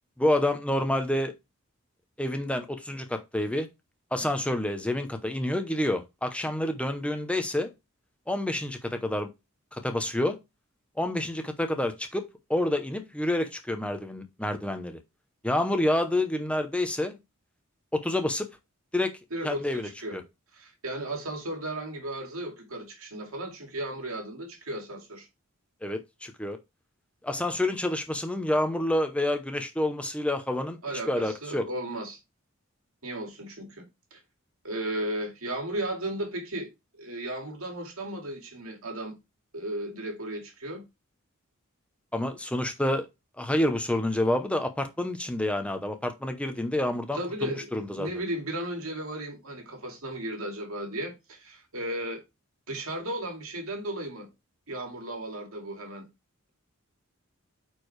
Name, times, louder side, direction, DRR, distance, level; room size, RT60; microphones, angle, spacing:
voice 1, 0.2-1.3 2.2-3.7 4.1-7.7 8.3-9.3 9.8-10.4 11.0-15.0 15.4-17.2 17.9-18.5 18.9-19.1 19.4-20.2 25.8-26.6 27.2-30.8 31.1-31.7 42.1-43.1 43.4-47.2 47.7-48.1, left 1 dB, 5° left, 0.7 m, -28 dB
voice 2, 19.3-20.2 20.5-25.3 30.8-32.2 33.0-33.9 34.1-34.2 34.6-36.7 37.0-39.2 39.5-40.8 47.1-52.2 52.7-54.3 54.7-56.1, right 1 dB, 85° right, 2.3 m, -35 dB
9.1 x 4.5 x 3.2 m
head